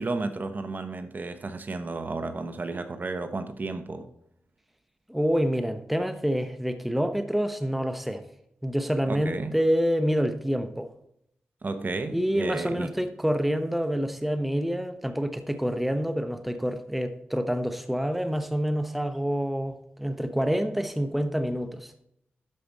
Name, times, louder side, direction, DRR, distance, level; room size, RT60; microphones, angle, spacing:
voice 1, 0.0-4.1 9.1-9.6 11.6-13.0, right 3 dB, 50° right, 1.0 m, -32 dB
voice 2, 5.1-8.2 8.6-10.9 12.1-21.9, equal, 5° right, 0.9 m, -27 dB
12.0 x 5.0 x 4.1 m
cardioid pair, 70°, 4 cm